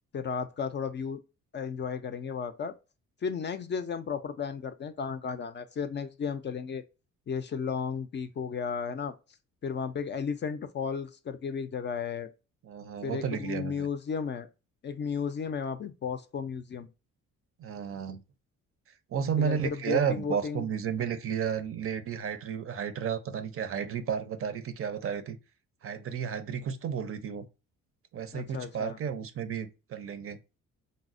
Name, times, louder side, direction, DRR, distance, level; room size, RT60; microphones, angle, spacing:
voice 1, 0.1-1.2 1.5-2.8 3.2-6.8 7.3-9.1 9.6-12.3 13.0-14.5 14.8-16.9 19.4-20.6 28.3-29.0, left 6 dB, 35° left, 0.4 m, -34 dB
voice 2, 12.6-13.9 17.6-18.2 19.1-25.4 25.8-27.5 28.1-30.4, right 7 dB, 45° right, 0.5 m, -32 dB
4.0 x 2.0 x 2.5 m
cardioid pair, 90°, 30 cm